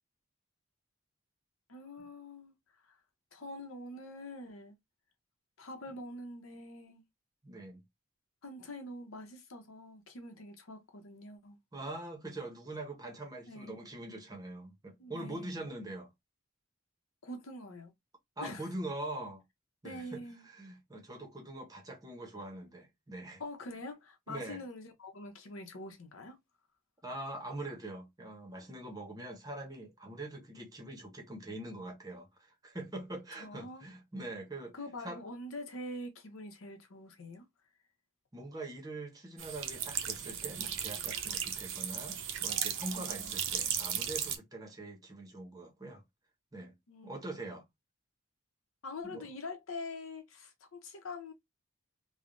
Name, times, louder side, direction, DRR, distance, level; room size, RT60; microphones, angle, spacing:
voice 1, 1.7-2.5 2.9-3.0 3.3-4.8 5.6-7.0 8.4-11.6 13.5-13.9 15.0-15.5 17.2-17.9 18.4-18.6 19.8-20.4 23.4-26.4 33.4-33.9 34.7-37.4 42.9-43.3 46.9-47.2 48.8-51.3, left 2 dB, 80° left, 0.8 m, -45 dB
voice 2, 7.4-7.8 11.7-16.1 18.4-19.4 19.8-23.4 24.3-24.6 27.0-34.8 35.0-35.2 38.3-46.0 46.5-46.8 47.0-47.6 49.0-49.3, right 2 dB, 20° right, 0.7 m, -43 dB
sound 1, 39.4-44.4, right 9 dB, 65° right, 0.5 m, -36 dB
3.2 x 2.1 x 2.5 m
head